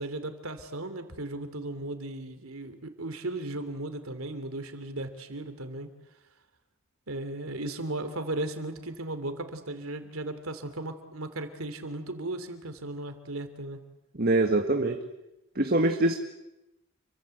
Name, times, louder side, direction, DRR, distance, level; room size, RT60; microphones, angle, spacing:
voice 1, 0.0-5.9 7.1-13.8, right 2 dB, 85° right, 9 dB, 3.1 m, -36 dB
voice 2, 14.2-15.0 15.6-16.2, right 2 dB, 45° right, 5 dB, 1.8 m, -24 dB
29.5 x 24.0 x 8.0 m, 0.92 s
head